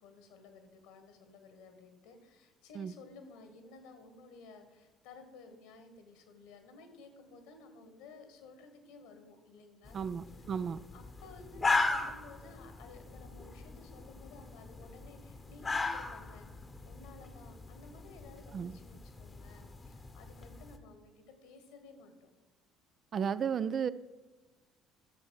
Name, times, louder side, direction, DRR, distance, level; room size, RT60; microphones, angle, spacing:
voice 1, 0.0-10.1 10.9-16.5 16.8-22.3, left 3 dB, 65° left, 7 dB, 1.6 m, -55 dB
sound 1, 9.8-20.8, left 3 dB, 25° left, 1.0 m, -38 dB
voice 2, 9.9-10.8 18.5-18.8 23.1-23.9, right 7 dB, 45° right, 14 dB, 0.4 m, -34 dB
12.0 x 7.3 x 4.8 m, 1.2 s
figure-of-eight pair, 55°, 0 cm